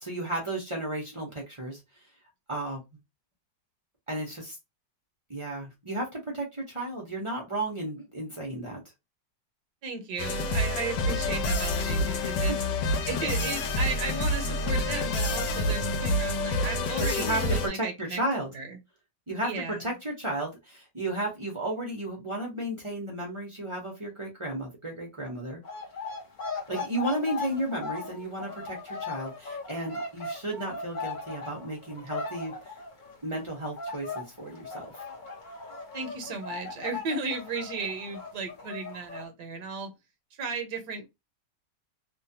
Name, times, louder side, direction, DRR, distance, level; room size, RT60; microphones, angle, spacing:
voice 1, 0.0-1.8 2.5-2.8 4.1-4.6 5.3-8.8 12.1-12.6 17.1-18.5 19.3-25.6 26.7-32.5 33.2-34.9, right 1 dB, 30° right, 0.5 m, -33 dB
voice 2, 9.8-12.5 13.0-18.2 18.5-18.7 19.4-19.9 35.9-39.9 40.4-41.1, right 4 dB, 70° right, 1.2 m, -35 dB
sound 1, 10.2-17.7, left 1 dB, 85° left, 1.3 m, -28 dB
sound 2, 25.6-33.5 33.8-39.3, left 4 dB, 50° left, 0.5 m, -38 dB
3.1 x 2.2 x 2.7 m
omnidirectional pair, 1.9 m